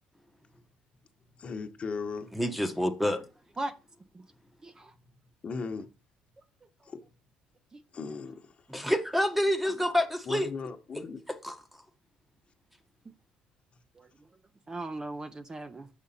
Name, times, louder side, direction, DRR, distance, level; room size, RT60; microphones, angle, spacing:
voice 1, 1.4-2.3 5.4-5.9 6.8-7.0 7.9-8.5 10.3-11.2, left 5 dB, 40° left, 1.0 m, -37 dB
voice 2, 2.3-3.2 8.7-10.5 11.3-11.6, equal, 5° right, 0.9 m, -27 dB
voice 3, 4.6-4.9 7.7-7.8 14.0-14.3 14.7-15.9, right 2 dB, 20° right, 0.5 m, -38 dB
6.3 x 5.2 x 4.2 m
supercardioid pair, 90°, 3 cm